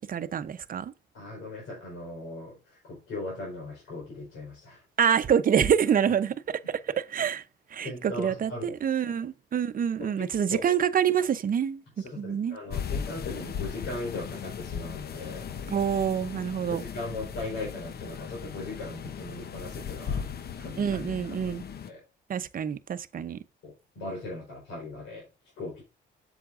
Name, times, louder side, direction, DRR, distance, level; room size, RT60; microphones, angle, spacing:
voice 1, 0.1-0.9 5.0-7.4 7.7-11.8 12.2-12.6 15.7-16.8 20.8-21.6 22.3-23.4, right 8 dB, 45° right, 0.7 m, -26 dB
voice 2, 1.1-4.8 7.8-8.7 10.0-10.7 12.0-15.8 16.7-21.0 21.3-21.6 21.9-22.0 23.6-25.3 25.6-25.8, left 2 dB, 85° left, 4.3 m, -39 dB
sound 1, 12.7-21.9, left 7 dB, 50° left, 0.8 m, -37 dB
7.8 x 7.2 x 2.6 m
cardioid pair, 90°, 20 cm